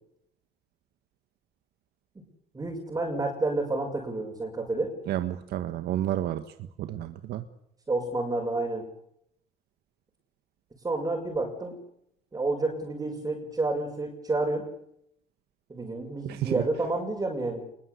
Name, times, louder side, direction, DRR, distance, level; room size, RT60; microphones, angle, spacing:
voice 1, 2.5-4.9 7.9-8.9 10.8-11.7 12.3-14.7 15.7-17.6, right 2 dB, 20° right, -1 dB, 6.5 m, -29 dB
voice 2, 5.1-6.4 6.8-7.4 16.2-16.6, right 12 dB, 75° right, 9 dB, 1.6 m, -30 dB
24.5 x 22.0 x 8.3 m, 0.74 s
cardioid pair, 110°, 17 cm